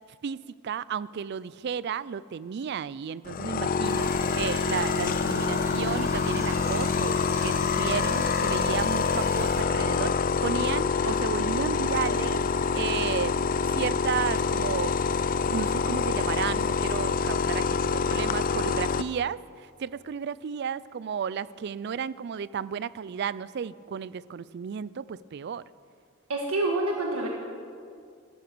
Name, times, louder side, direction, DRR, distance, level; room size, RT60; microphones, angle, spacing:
voice 1, 0.2-7.2 7.4-12.4 12.7-13.5 13.7-14.9 15.4-25.6, right 7 dB, 50° right, 20 dB, 0.3 m, -33 dB
sound 1, 3.3-19.0, left 5 dB, 40° left, 0.4 m, -26 dB
sound 2, 3.8-9.6, right 1 dB, 15° right, 1.3 m, -39 dB
voice 2, 26.3-27.3, right 2 dB, 90° right, 0 dB, 1.5 m, -27 dB
13.5 x 13.0 x 6.1 m, 2.3 s
head